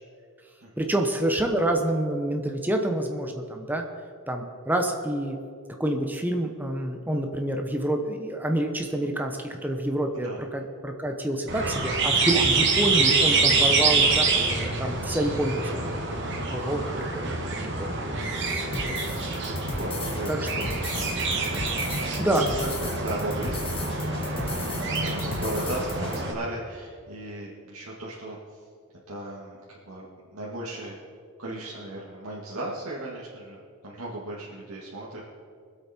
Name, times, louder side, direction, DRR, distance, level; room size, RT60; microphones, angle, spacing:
voice 1, 0.8-3.8 4.3-5.4 5.8-15.8 16.5-19.0 20.3-20.5 22.2-22.4, right 1 dB, 10° right, 3 dB, 0.9 m, -28 dB
sound 1, 11.5-26.3, right 3 dB, 50° right, 1.9 m, -26 dB
voice 2, 14.0-14.5 14.9-15.2 16.5-16.7 18.5-18.6 19.0-19.1 19.7-21.0 21.5-24.4 24.8-28.4 29.1-30.1 30.3-31.0 31.4-35.2, right 1 dB, 75° right, -6 dB, 2.1 m, -37 dB
sound 2, 18.7-26.2, left 3 dB, 25° left, 1.1 m, -37 dB
24.5 x 8.2 x 4.4 m, 2.3 s
head